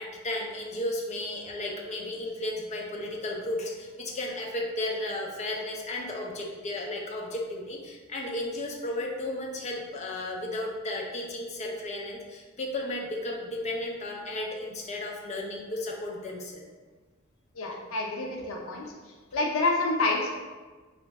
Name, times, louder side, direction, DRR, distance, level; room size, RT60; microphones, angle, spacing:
voice 1, 0.0-16.6 17.6-17.8, left 1 dB, 35° left, -1 dB, 0.5 m, -34 dB
voice 2, 17.6-18.8 19.3-20.3, left 2 dB, 90° left, 0 dB, 0.5 m, -27 dB
3.3 x 2.5 x 3.1 m, 1.3 s
head